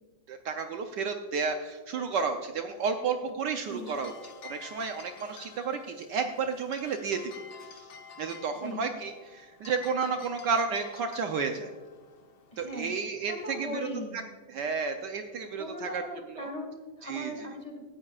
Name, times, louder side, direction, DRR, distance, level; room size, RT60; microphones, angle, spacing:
voice 1, 0.3-4.1 4.4-7.2 8.2-11.7 12.6-13.9 14.5-16.0 16.4-16.5 17.0-17.3, right 5 dB, 70° right, 5 dB, 1.3 m, -32 dB
sound 1, 3.6-14.0, left 6 dB, 70° left, 1.8 m, -50 dB
voice 2, 8.6-8.9 12.5-14.2 15.6-17.8, left 1 dB, 20° left, 2 dB, 2.2 m, -39 dB
17.5 x 13.5 x 2.4 m, 1.4 s
omnidirectional pair, 2.0 m